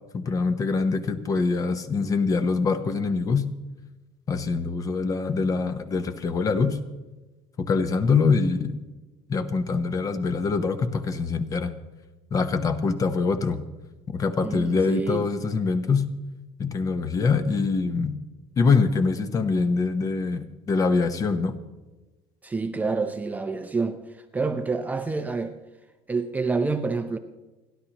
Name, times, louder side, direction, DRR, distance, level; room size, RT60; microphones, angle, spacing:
voice 1, 0.1-3.4 4.3-6.8 7.6-8.8 9.3-11.7 12.3-13.6 14.1-16.1 16.6-18.2 18.6-21.5, left 4 dB, 25° left, 9 dB, 0.9 m, -24 dB
voice 2, 14.4-15.3 22.4-25.5 26.1-27.2, right 4 dB, 10° right, 7 dB, 0.6 m, -28 dB
29.5 x 11.5 x 3.0 m, 1.1 s
cardioid pair, 170°, 13 cm